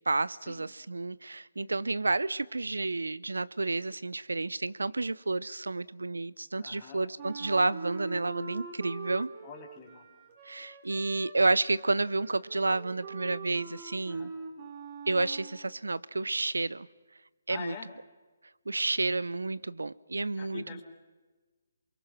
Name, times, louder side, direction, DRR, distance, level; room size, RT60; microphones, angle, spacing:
voice 1, 0.1-9.3 10.5-14.3 15.1-16.9 17.5-17.7 18.7-20.8, right 3 dB, 80° right, 19 dB, 0.8 m, -30 dB
voice 2, 6.6-7.1 9.4-10.1 14.1-14.3 17.5-17.9 20.4-20.8, left 7 dB, 25° left, 1 dB, 3.9 m, -44 dB
Wind instrument woodwind instrument, 7.2-15.6, right 4 dB, 30° right, 3.5 m, -44 dB
28.0 x 23.5 x 6.0 m, 1.3 s
figure-of-eight pair, 145°, 0 cm